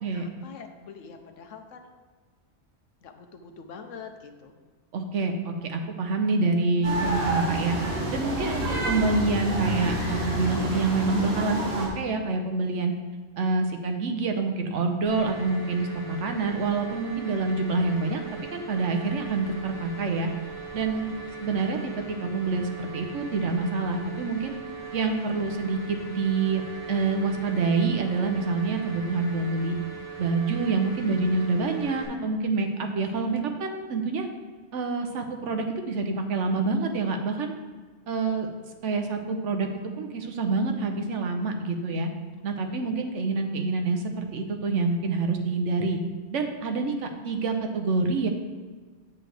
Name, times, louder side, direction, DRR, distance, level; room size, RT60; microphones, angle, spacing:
voice 1, 0.1-1.9 3.0-4.5 8.5-8.7 21.1-21.4 38.2-38.5 42.8-42.9, left 5 dB, 85° left, 5 dB, 1.1 m, -45 dB
voice 2, 4.9-7.8 8.1-12.9 13.4-18.2 18.5-20.3 20.7-24.5 24.9-26.6 26.9-29.8 30.2-34.3 34.7-37.5 38.1-38.5 38.8-42.1 42.4-46.0 46.3-48.3, right 3 dB, 75° right, 4 dB, 1.1 m, -27 dB
sound 1, 6.8-11.9, right 1 dB, 55° right, 1.8 m, -29 dB
sound 2, 15.1-32.1, right 4 dB, 25° right, 2.0 m, -40 dB
7.7 x 7.3 x 3.3 m, 1.4 s
omnidirectional pair, 1.2 m